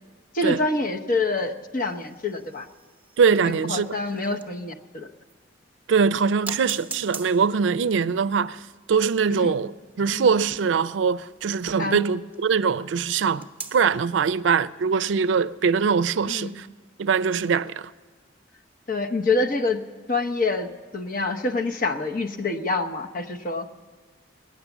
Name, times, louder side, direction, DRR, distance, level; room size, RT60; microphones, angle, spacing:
voice 1, 0.3-2.7 3.4-5.1 6.0-6.2 9.3-9.5 10.1-10.3 11.8-12.0 16.3-16.5 18.9-19.8 20.1-20.7 20.9-23.7, left 3 dB, 50° left, 0.9 m, -26 dB
sound 1, 1.8-4.7 5.3-5.4 6.5-12.5 13.4-14.1, right 4 dB, 10° right, 0.9 m, -42 dB
voice 2, 3.2-3.9 5.9-8.6 8.9-13.5 13.7-16.7 17.0-17.9, right 6 dB, 75° right, 0.4 m, -22 dB
19.0 x 9.4 x 7.1 m
head